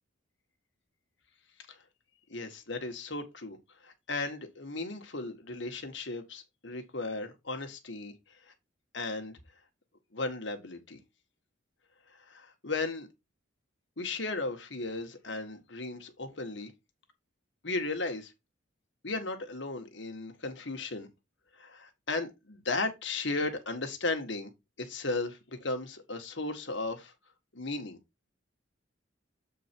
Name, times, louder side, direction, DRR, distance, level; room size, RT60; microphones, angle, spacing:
voice 1, 2.3-3.6 3.8-8.5 8.9-9.3 10.1-11.0 12.1-13.1 14.0-16.7 17.6-18.3 19.0-21.1 21.5-24.5 24.8-27.1 27.5-28.0, left 3 dB, 65° left, 1.7 m, -36 dB
8.0 x 4.6 x 4.5 m
head